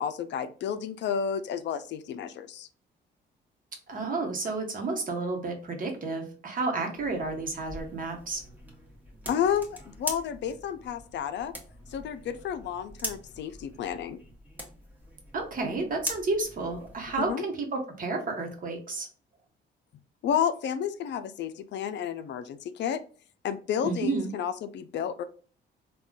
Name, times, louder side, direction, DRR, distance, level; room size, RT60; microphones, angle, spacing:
voice 1, 0.0-2.7 9.3-11.5 11.9-14.2 17.2-17.4 20.2-23.0 23.4-25.2, left 8 dB, 65° left, 11 dB, 0.4 m, -31 dB
voice 2, 3.9-8.4 15.3-19.1 23.8-24.3, right 3 dB, 45° right, 2 dB, 1.0 m, -31 dB
sound 1, 6.9-17.3, equal, 10° right, 1.0 m, -42 dB
3.6 x 2.3 x 2.3 m, 0.41 s
cardioid pair, 90°, 20 cm